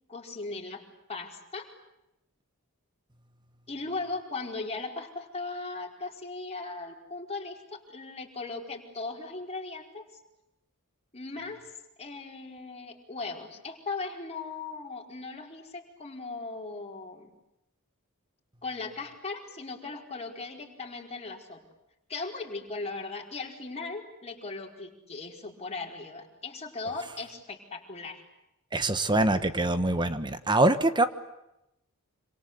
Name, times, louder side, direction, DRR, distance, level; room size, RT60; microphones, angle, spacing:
voice 1, 0.1-0.8 1.1-1.7 3.7-10.0 11.1-11.7 12.0-17.3 18.6-21.6 22.1-28.2, left 3 dB, 30° left, 1 dB, 4.7 m, -38 dB
voice 2, 28.7-31.1, right 2 dB, 20° right, 11 dB, 1.3 m, -24 dB
27.5 x 26.5 x 8.2 m, 0.87 s
head